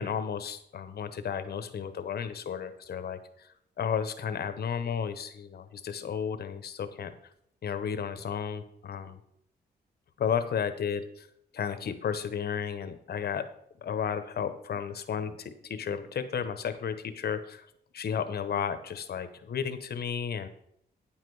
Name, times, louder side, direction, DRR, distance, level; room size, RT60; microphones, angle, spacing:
voice 1, 0.0-3.5 3.8-7.1 7.6-9.2 10.2-11.3 11.5-13.5 13.8-17.7 17.9-20.5, left 7 dB, 70° left, 10 dB, 1.0 m, -33 dB
9.9 x 7.5 x 4.8 m, 0.73 s
cardioid pair, 105°, 17 cm